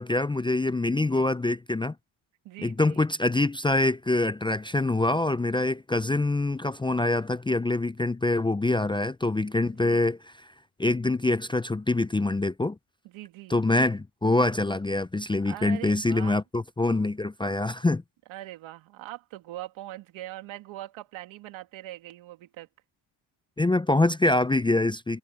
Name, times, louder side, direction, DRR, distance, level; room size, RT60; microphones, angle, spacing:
voice 1, 0.0-1.9 2.6-10.2 10.8-12.8 13.5-18.0 23.6-25.2, left 2 dB, 10° left, 0.5 m, -25 dB
voice 2, 2.4-3.0 9.7-10.1 13.0-13.6 15.5-16.3 18.3-22.7, right 15 dB, 80° right, 2.5 m, -42 dB
supercardioid pair, 80°, 47 cm